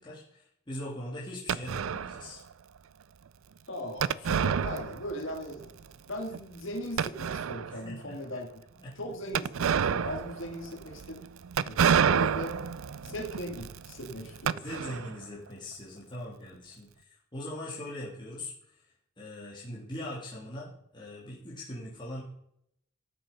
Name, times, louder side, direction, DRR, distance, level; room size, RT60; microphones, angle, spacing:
voice 1, 0.0-2.4 7.7-8.4 8.8-8.9 12.1-12.2 14.5-18.8 19.2-22.2, left 1 dB, 25° left, -6 dB, 3.2 m, -41 dB
sound 1, 1.5-2.3 4.0-5.4 5.6-5.7 6.3-6.4 7.0-7.8 9.3-15.2, right 7 dB, 90° right, 0.4 m, -29 dB
voice 2, 3.7-5.7 6.0-8.5 9.0-11.2 11.6-12.6 13.0-14.6, left 1 dB, 70° left, 3 dB, 2.4 m, -39 dB
13.0 x 8.4 x 5.4 m, 0.73 s
head